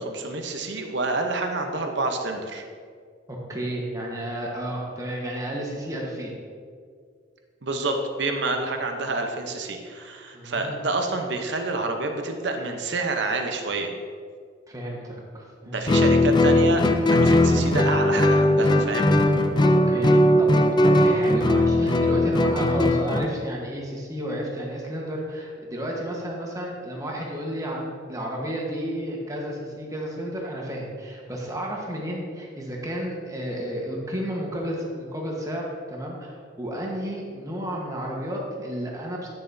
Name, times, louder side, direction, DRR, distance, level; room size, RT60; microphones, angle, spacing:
voice 1, 0.0-2.6 7.6-13.9 15.7-19.1 22.6-22.7, right 3 dB, 65° right, 4 dB, 0.8 m, -28 dB
voice 2, 3.3-6.3 10.3-10.8 14.7-15.8 19.6-20.6 20.8-39.3, equal, 20° right, -2 dB, 1.2 m, -32 dB
Guitar, 15.9-23.3, left 1 dB, 25° left, 0.3 m, -19 dB
9.9 x 6.8 x 2.7 m, 2.1 s
head